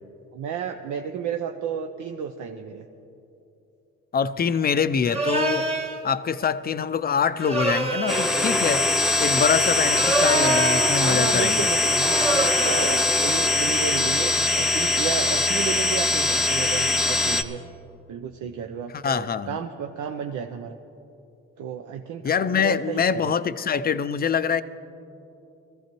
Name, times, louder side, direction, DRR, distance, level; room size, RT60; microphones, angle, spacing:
voice 1, 0.3-2.9 11.0-17.6 18.1-20.8 21.6-23.3, right 7 dB, 80° right, 4 dB, 0.7 m, -32 dB
voice 2, 4.1-5.7 6.0-8.9 9.2-11.7 18.9-19.6 22.2-24.6, left 6 dB, 30° left, 13 dB, 0.5 m, -24 dB
sound 1, 5.1-6.0 7.4-8.4 9.8-11.0 12.0-13.1, right 2 dB, 20° right, 1.4 m, -26 dB
sound 2, 8.1-17.4, left 2 dB, ahead, 0.7 m, -22 dB
21.0 x 14.5 x 3.0 m, 2.8 s
cardioid pair, 90°, 30 cm